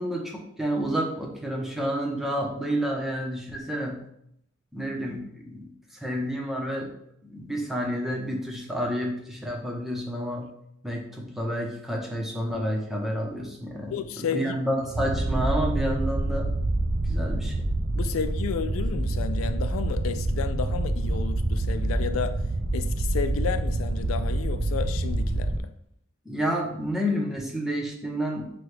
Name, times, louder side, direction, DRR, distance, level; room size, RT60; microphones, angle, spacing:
voice 1, 0.0-4.0 4.7-6.9 7.2-10.5 10.8-16.5 17.0-17.7 26.2-28.5, equal, ahead, 0.8 m, -30 dB
voice 2, 13.9-14.6 18.0-22.4 22.7-25.7, left 6 dB, 85° left, 0.3 m, -32 dB
sound 1, 14.9-25.6, right 2 dB, 40° right, 0.4 m, -27 dB
6.1 x 2.3 x 3.3 m
head